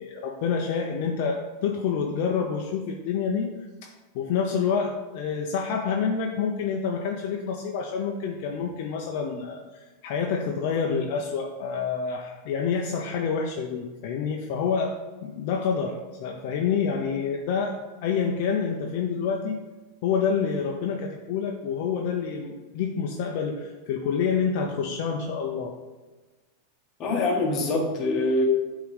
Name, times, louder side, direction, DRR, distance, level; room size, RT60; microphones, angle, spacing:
voice 1, 0.0-3.5 3.8-15.0 15.2-19.6 20.0-25.7, left 6 dB, 55° left, 1 dB, 0.6 m, -28 dB
voice 2, 27.0-28.5, left 2 dB, 30° left, 0 dB, 1.3 m, -24 dB
8.0 x 3.7 x 3.3 m, 1.2 s
supercardioid pair, 145°, 0 cm